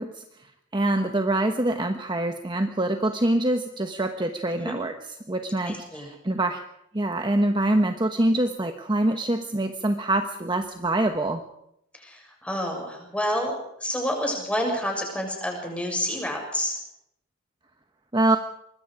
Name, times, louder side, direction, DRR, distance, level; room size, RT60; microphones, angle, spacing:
voice 1, 0.0-4.9 5.3-6.6 6.9-11.4 18.1-18.4, right 1 dB, 25° right, 6 dB, 1.2 m, -25 dB
voice 2, 5.6-6.1 11.9-16.7, equal, 5° left, 1 dB, 6.9 m, -29 dB
25.0 x 21.0 x 5.0 m, 0.76 s
head